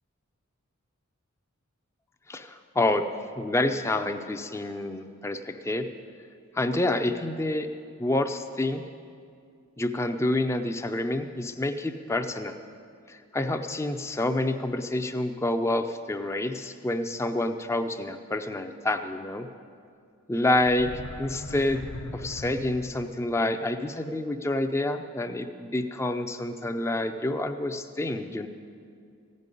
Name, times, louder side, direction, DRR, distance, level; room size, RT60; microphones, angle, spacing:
voice 1, 2.3-3.1 3.4-5.9 6.5-7.7 8.0-8.8 9.8-12.6 13.1-19.5 20.3-20.9 21.2-21.8 22.1-28.5, left 1 dB, 10° left, 7 dB, 0.4 m, -28 dB
sound 1, 20.5-23.3, left 1 dB, 85° left, 0.9 m, -39 dB
15.0 x 5.3 x 9.7 m, 2.3 s
head